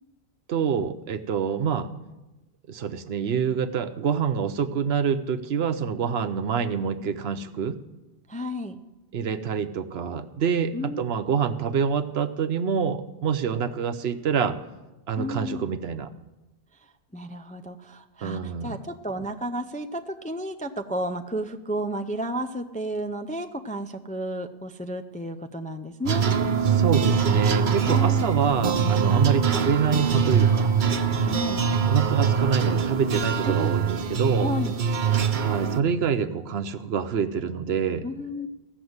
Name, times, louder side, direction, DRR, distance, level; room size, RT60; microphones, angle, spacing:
voice 1, 0.5-1.9 2.7-7.8 9.1-14.6 15.1-16.1 18.2-18.8 26.8-30.7 31.9-34.5 35.4-38.0, right 7 dB, 75° right, 11 dB, 1.0 m, -26 dB
voice 2, 8.3-8.8 10.7-11.0 15.2-15.6 17.1-26.3 27.9-28.3 31.2-31.6 33.5-33.8 34.4-34.7 38.0-38.5, equal, 10° left, 5 dB, 0.3 m, -32 dB
sound 1, 26.0-35.8, right 6 dB, 50° right, 0.9 m, -23 dB
15.5 x 6.4 x 7.9 m, 1.0 s
omnidirectional pair, 1.1 m